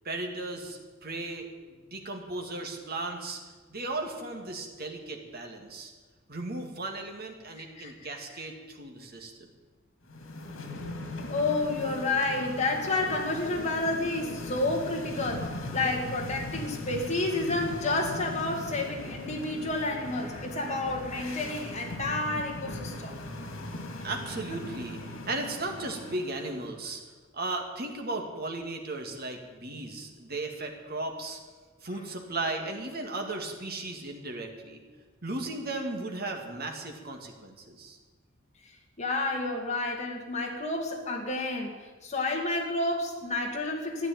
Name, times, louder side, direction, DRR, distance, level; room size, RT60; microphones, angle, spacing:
voice 1, 0.0-3.4 3.7-5.9 6.3-9.5 24.0-25.0 25.3-27.0 27.3-31.4 31.8-34.8 35.2-38.0, right 2 dB, 50° right, 3 dB, 2.2 m, -36 dB
sound 1, 10.0-26.7, left 1 dB, 85° left, 2.2 m, -39 dB
voice 2, 11.3-23.2 39.0-41.7 42.0-44.1, left 2 dB, 35° left, 0 dB, 2.5 m, -30 dB
13.5 x 9.8 x 9.2 m, 1.4 s
head